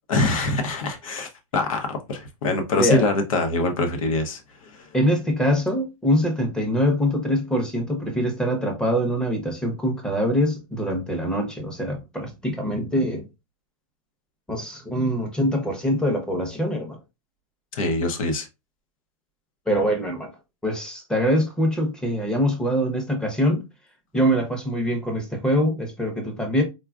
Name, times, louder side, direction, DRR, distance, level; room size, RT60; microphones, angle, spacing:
voice 1, 0.1-4.9 17.7-18.5, left 2 dB, 80° left, 0.8 m, -24 dB
voice 2, 2.8-3.1 4.9-13.3 14.5-17.0 19.7-20.3 20.6-23.6 24.1-26.6, equal, 5° left, 0.7 m, -24 dB
3.7 x 2.3 x 2.3 m
hypercardioid pair, 130°, 17 cm